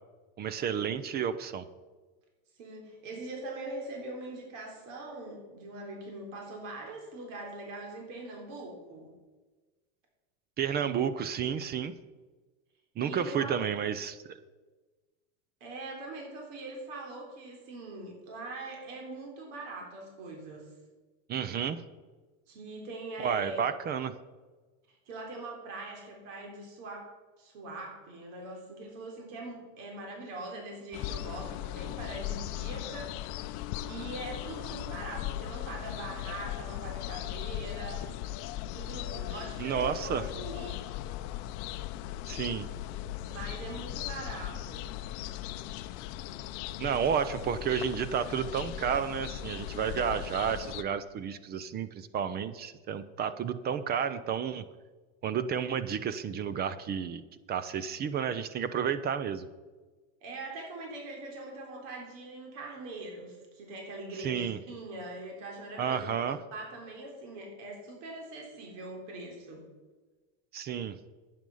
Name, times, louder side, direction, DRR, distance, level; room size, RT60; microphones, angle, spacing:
voice 1, 0.4-1.6 10.6-11.9 13.0-14.4 21.3-21.8 23.2-24.2 39.6-40.3 42.3-42.7 46.8-54.6 55.2-57.2 57.5-59.5 64.2-64.6 65.8-66.4 70.5-71.0, right 8 dB, 25° right, 14 dB, 0.5 m, -31 dB
voice 2, 2.6-9.1 13.0-13.6 15.6-20.7 22.5-23.6 24.9-27.1 27.4-38.1 38.7-40.9 43.3-44.9 60.2-66.1 66.5-69.6, right 2 dB, 65° right, 0 dB, 3.8 m, -42 dB
sound 1, 30.9-50.8, left 13 dB, 50° left, 0.6 m, -38 dB
11.0 x 9.3 x 5.5 m, 1.3 s
supercardioid pair, 140°, 40 cm